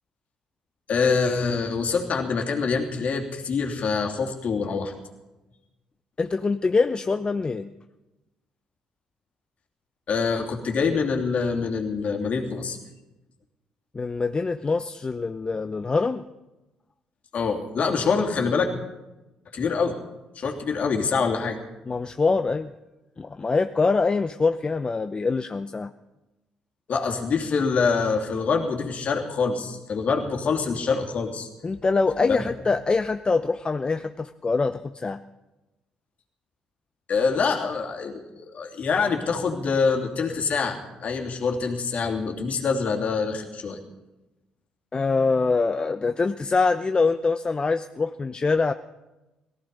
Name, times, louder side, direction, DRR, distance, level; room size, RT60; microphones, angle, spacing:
voice 1, 0.9-4.9 10.1-12.8 17.3-18.7 19.5-19.9 20.3-21.6 26.9-31.5 32.3-32.4 37.1-43.8, left 5 dB, 50° left, 2 dB, 2.8 m, -25 dB
voice 2, 6.2-7.7 13.9-16.2 21.9-22.7 23.2-25.9 31.6-35.2 44.9-48.7, left 4 dB, 30° left, 10 dB, 0.7 m, -24 dB
18.0 x 15.0 x 5.4 m, 1.0 s
hypercardioid pair, 50°, 3 cm